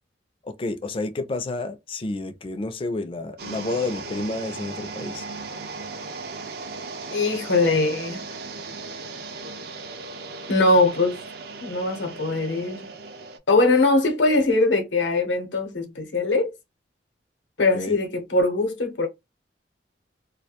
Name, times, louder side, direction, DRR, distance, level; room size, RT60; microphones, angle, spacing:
voice 1, 0.4-5.3 17.7-18.0, left 2 dB, 30° left, 0.4 m, -30 dB
sound 1, 3.4-13.4, right 3 dB, 60° right, 0.5 m, -37 dB
voice 2, 7.1-8.2 10.5-11.2 11.6-12.9 13.5-16.5 17.6-19.1, left 2 dB, 90° left, 0.7 m, -21 dB
2.3 x 2.1 x 2.8 m
head